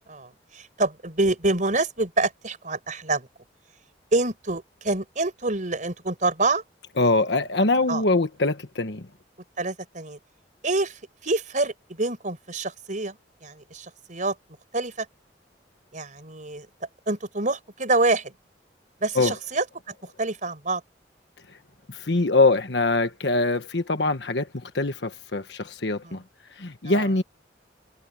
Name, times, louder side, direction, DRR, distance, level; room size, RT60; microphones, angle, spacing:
voice 1, 0.1-3.3 4.1-6.6 7.9-8.0 9.6-10.2 10.6-14.4 14.7-15.1 15.9-16.7 17.1-18.3 19.0-19.7 20.2-20.8 26.0-26.2 26.9-27.1, right 2 dB, 45° right, 5.1 m, -26 dB
voice 2, 7.0-9.0 19.1-19.3 21.9-26.2 26.6-27.2, left 2 dB, 75° left, 1.3 m, -23 dB
head